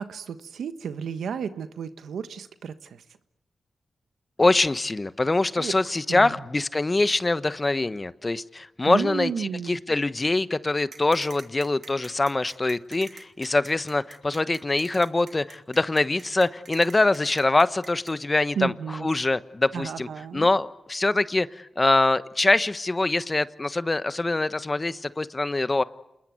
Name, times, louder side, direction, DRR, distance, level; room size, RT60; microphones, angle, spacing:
voice 1, 0.0-3.0 5.6-5.7 6.1-6.4 8.8-9.8 18.5-19.1 19.7-20.5, right 7 dB, 85° right, 10 dB, 1.3 m, -32 dB
voice 2, 4.4-18.7 19.0-20.1 20.3-25.8, left 2 dB, 30° left, 14 dB, 1.1 m, -24 dB
sound 1, 10.9-18.1, right 5 dB, 65° right, 2.8 m, -46 dB
28.0 x 21.0 x 9.4 m, 0.89 s
cardioid pair, 50°, 0 cm